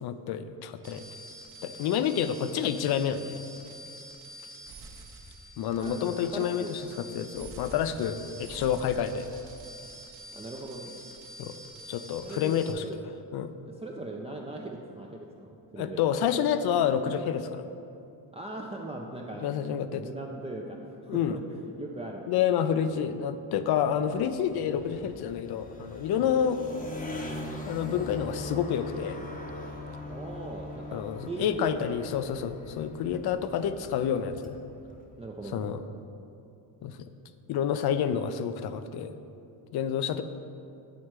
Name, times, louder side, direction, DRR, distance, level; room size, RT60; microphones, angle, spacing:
voice 1, 0.0-1.0 1.6-3.4 5.6-9.4 11.4-11.5 11.9-12.8 13.3-13.5 15.8-17.6 19.4-20.0 21.1-21.4 22.3-26.6 27.7-29.2 30.9-34.6 35.5-35.8 36.8-37.0 37.5-39.1 39.7-40.2, left 8 dB, 55° left, 11 dB, 0.5 m, -29 dB
sound 1, 0.8-12.7, right 1 dB, 45° right, 0.8 m, -46 dB
voice 2, 5.8-6.7 10.3-10.9 12.2-13.0 13.6-16.0 18.3-19.5 19.9-22.2 22.8-23.1 26.1-26.3 30.1-32.0 35.2-35.7, right 2 dB, 15° right, -1 dB, 0.4 m, -40 dB
sound 2, 23.9-35.4, left 1 dB, 20° left, 0.8 m, -42 dB
9.1 x 3.1 x 4.6 m, 2.7 s
supercardioid pair, 75°, 46 cm